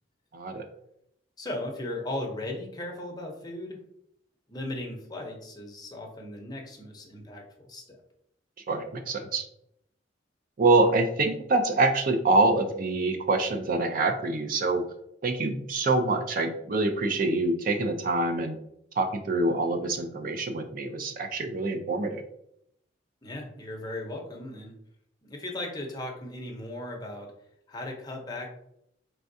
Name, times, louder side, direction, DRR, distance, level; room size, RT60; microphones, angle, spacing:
voice 1, 0.3-0.7 8.7-9.5 10.6-14.8 15.2-18.6 19.0-22.2, right 2 dB, 50° right, 6 dB, 0.5 m, -25 dB
voice 2, 1.4-3.8 4.5-8.0 23.2-24.8 25.2-27.3 27.7-28.5, left 1 dB, 20° left, 1 dB, 0.8 m, -37 dB
4.4 x 3.4 x 2.6 m, 0.74 s
head